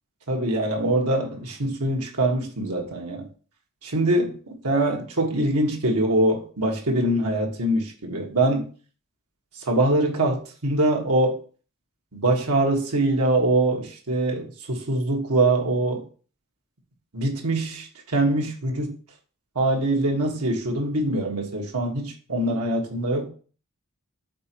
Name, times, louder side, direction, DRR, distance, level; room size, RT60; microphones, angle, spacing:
voice 1, 0.3-3.3 3.8-4.3 4.6-8.7 9.7-11.4 12.1-16.0 17.1-18.9 19.5-23.3, right 1 dB, 90° right, 0 dB, 1.6 m, -23 dB
5.2 x 4.1 x 4.6 m, 0.40 s
head